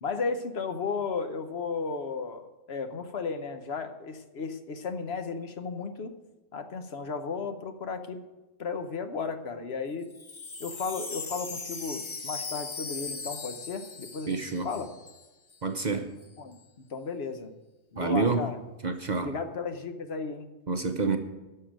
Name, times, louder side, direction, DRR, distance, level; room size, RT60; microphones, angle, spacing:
voice 1, 0.0-6.1 6.5-8.2 8.6-10.1 10.6-14.4 14.6-14.9 16.4-16.6 16.9-17.5 17.9-18.6 19.2-20.5, left 4 dB, 60° left, 8 dB, 1.1 m, -34 dB
Wind chime, 10.0-15.3 15.5-15.6 15.8-16.3, left 4 dB, 30° left, 0.7 m, -39 dB
voice 2, 14.3-14.7 15.6-16.1 18.0-18.5 18.8-19.3 20.7-21.2, right 4 dB, 45° right, 6 dB, 0.7 m, -28 dB
11.0 x 6.7 x 8.9 m, 1.1 s
omnidirectional pair, 1.3 m